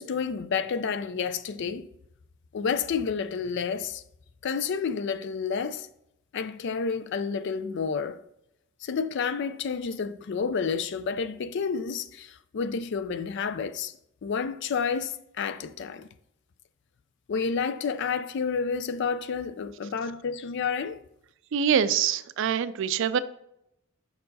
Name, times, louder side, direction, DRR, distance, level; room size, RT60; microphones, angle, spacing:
voice 1, 0.0-1.9 2.5-4.0 4.4-5.9 6.3-8.2 8.8-13.9 14.2-16.1 17.3-21.0, left 5 dB, 60° left, 0.4 m, -30 dB
voice 2, 21.5-23.2, right 8 dB, 65° right, 0.4 m, -24 dB
5.4 x 4.5 x 4.0 m
head